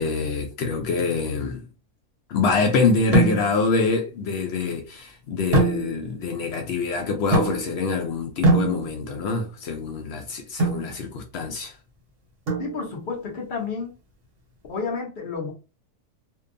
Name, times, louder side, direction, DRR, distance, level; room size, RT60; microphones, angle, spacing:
voice 1, 0.0-1.6 2.3-11.8, left 4 dB, 85° left, 0.5 m, -25 dB
sound 1, 3.1-3.8 5.5-6.3 7.3-7.9 8.4-9.2 10.6-10.9 12.5-13.1, right 2 dB, 50° right, 0.8 m, -23 dB
voice 2, 12.6-14.0 14.7-15.5, left 5 dB, 45° left, 0.7 m, -30 dB
2.6 x 2.2 x 2.5 m
omnidirectional pair, 1.6 m